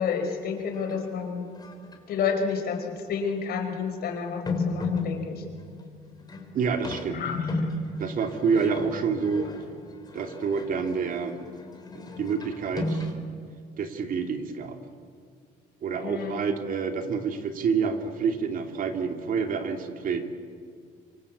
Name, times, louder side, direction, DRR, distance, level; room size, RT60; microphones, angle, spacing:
voice 1, 0.0-1.5 2.1-5.4 7.1-7.7 16.0-16.4, left 6 dB, 65° left, 4 dB, 4.8 m, -30 dB
sound 1, 0.6-1.1 1.6-2.2 2.9-3.0 4.5-13.1, left 2 dB, 25° left, 4.0 m, -34 dB
voice 2, 6.5-7.2 8.0-9.5 10.1-11.4 11.9-13.1 13.8-14.8 15.8-20.3, right 5 dB, 55° right, 5 dB, 2.7 m, -28 dB
26.0 x 23.5 x 8.4 m, 2.2 s
cardioid pair, 110°, 17 cm